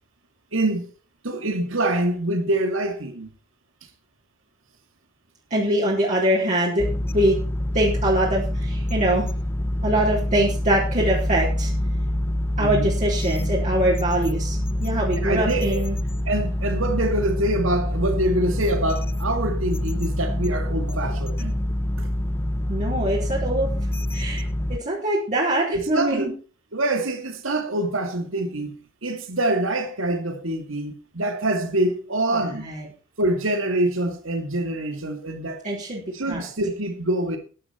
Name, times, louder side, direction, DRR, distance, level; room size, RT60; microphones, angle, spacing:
voice 1, 0.5-0.9 1.2-3.3 12.6-12.9 15.2-15.8 16.3-21.5 22.0-22.1 25.7-26.3 26.7-28.8 29.0-32.7 33.2-35.6 36.1-37.4, right 1 dB, 70° right, 2.4 m, -25 dB
voice 2, 5.5-6.9 7.1-7.4 7.7-9.3 9.8-11.7 12.6-16.0 22.7-23.7 24.1-24.4 24.7-26.3 32.3-32.9 35.6-36.4, right 1 dB, 40° right, 4.1 m, -23 dB
sound 1, 6.8-24.8, left 1 dB, 10° left, 0.5 m, -26 dB
13.0 x 10.5 x 4.5 m
head